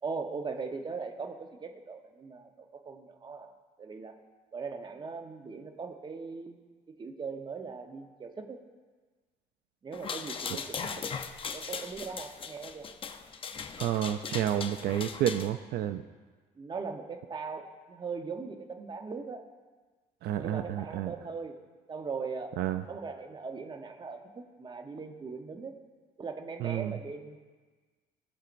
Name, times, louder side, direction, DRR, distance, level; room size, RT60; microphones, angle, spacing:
voice 1, 0.0-3.5 3.8-4.2 4.5-6.6 6.9-8.6 9.8-11.2 11.5-12.9 16.6-19.5 20.4-21.6 21.9-22.6 22.9-25.7 26.2-27.4, right 4 dB, 25° right, 6 dB, 0.9 m, -40 dB
sound 1, 9.9-15.5, left 6 dB, 30° left, 0.7 m, -39 dB
voice 2, 13.8-16.0 20.2-21.1 22.6-22.8 26.6-27.0, right 11 dB, 70° right, 10 dB, 0.4 m, -30 dB
18.5 x 6.6 x 2.6 m, 1.4 s
cardioid pair, 110°, 17 cm